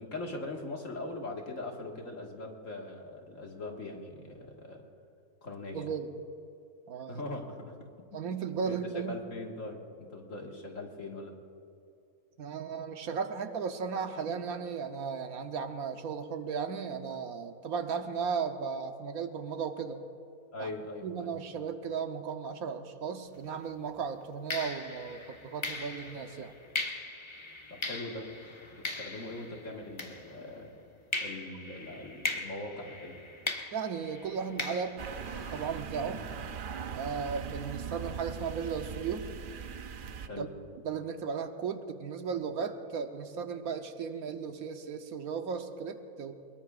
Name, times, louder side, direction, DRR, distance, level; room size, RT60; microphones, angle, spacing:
voice 1, 0.0-4.8 5.4-5.9 7.1-7.8 8.1-8.2 8.6-8.8 9.1-11.4 20.5-21.3 27.7-28.3 28.8-30.7 31.2-33.2 36.0-36.3 40.3-40.5, left 2 dB, 60° left, 0 dB, 2.1 m, -41 dB
voice 2, 5.7-6.1 6.9-7.2 8.1-9.1 12.4-20.0 20.6-20.7 21.0-26.5 33.7-35.0 35.5-36.2 36.9-39.3 40.4-40.5 40.8-46.3, right 6 dB, 75° right, 7 dB, 1.3 m, -35 dB
sound 1, 23.3-23.6 24.5-30.7 31.1-35.8, left 2 dB, 20° left, 1.1 m, -39 dB
sound 2, 35.0-40.3, right 7 dB, 55° right, 0.5 m, -40 dB
23.5 x 21.5 x 2.5 m, 2.6 s
omnidirectional pair, 1.6 m